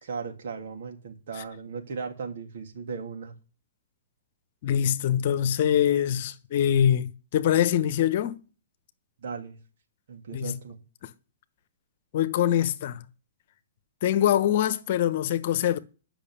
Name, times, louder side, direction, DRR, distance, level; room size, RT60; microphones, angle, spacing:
voice 1, 0.0-3.3 9.2-9.6 10.1-10.8, right 5 dB, 60° right, 3.1 m, -37 dB
voice 2, 4.6-8.4 10.3-10.6 12.1-13.0 14.0-15.8, left 10 dB, 50° left, 1.1 m, -24 dB
10.5 x 6.2 x 8.5 m
figure-of-eight pair, 115°, 0 cm